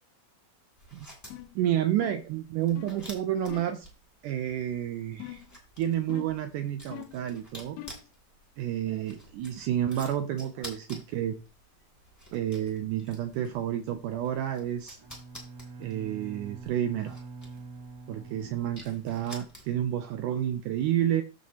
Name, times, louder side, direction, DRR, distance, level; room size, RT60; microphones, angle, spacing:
sound 1, 0.7-20.0, equal, 5° left, 2.1 m, -51 dB
sound 2, 1.3-1.6 2.0-2.3 2.8-3.0 3.5-3.8 5.2-5.6 6.1-6.5 6.9-7.3 7.8-8.1, left 15 dB, 80° left, 2.2 m, -43 dB
voice 1, 1.5-3.9 4.2-5.4 5.8-7.8 8.6-11.4 12.3-15.0 15.8-17.3 18.1-21.2, right 11 dB, 85° right, 9 dB, 1.8 m, -30 dB
Bowed string instrument, 15.0-19.7, right 3 dB, 55° right, 1.0 m, -45 dB
14.0 x 5.3 x 2.9 m, 0.31 s
omnidirectional pair, 4.2 m